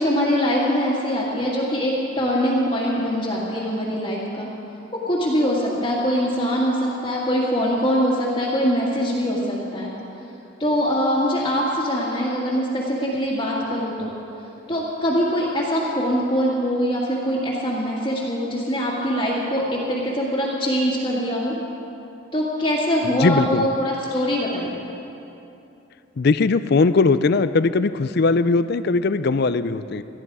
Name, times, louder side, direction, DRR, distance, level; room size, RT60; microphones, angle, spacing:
voice 1, 0.0-4.5 4.9-9.9 10.6-14.1 14.7-21.6 22.3-24.8, equal, 25° left, -8 dB, 2.0 m, -23 dB
voice 2, 23.2-23.7 26.2-30.0, left 3 dB, 50° left, 13 dB, 0.4 m, -19 dB
19.0 x 14.0 x 4.8 m, 2.8 s
head